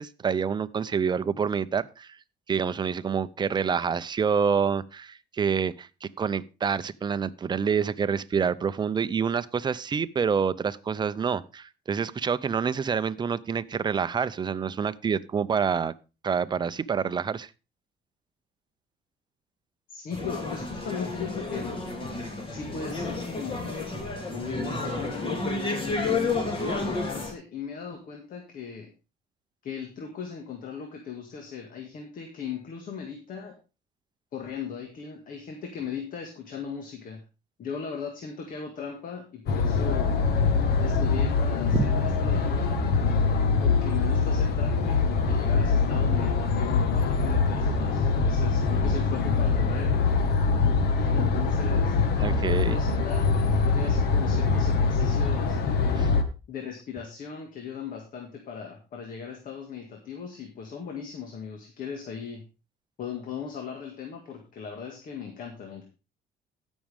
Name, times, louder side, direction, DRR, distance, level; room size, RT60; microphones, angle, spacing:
voice 1, 0.0-2.2 2.5-15.9 16.2-17.5 41.7-41.9 52.2-52.8 56.0-56.1, right 6 dB, 25° right, 13 dB, 0.6 m, -27 dB
voice 2, 19.9-21.7 22.5-23.7 24.3-25.3 25.8-28.9 29.6-33.6 34.3-37.2 37.6-40.2 40.8-42.9 43.6-50.0 51.0-51.9 52.5-55.6 56.5-62.4 63.0-65.9, left 6 dB, 55° left, 3 dB, 1.9 m, -38 dB
sound 1, 20.1-27.3, left 3 dB, 30° left, 2.8 m, -31 dB
sound 2, 39.5-56.2, left 4 dB, 70° left, 1.5 m, -24 dB
16.0 x 6.3 x 3.5 m, 0.30 s
cardioid pair, 110°, 17 cm